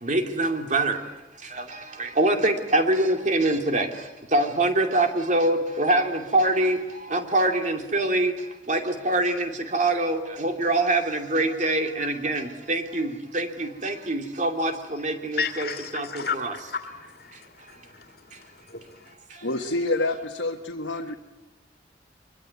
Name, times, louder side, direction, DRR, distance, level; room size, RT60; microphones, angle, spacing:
voice 1, 0.0-16.5 17.3-17.4 18.3-18.4 19.3-19.5, right 2 dB, 40° right, 5 dB, 2.7 m, -25 dB
voice 2, 15.4-19.1, left 5 dB, 55° left, 5 dB, 2.3 m, -34 dB
voice 3, 19.4-21.2, left 2 dB, 90° left, 1 dB, 1.7 m, -27 dB
24.5 x 23.5 x 9.7 m, 1.1 s
head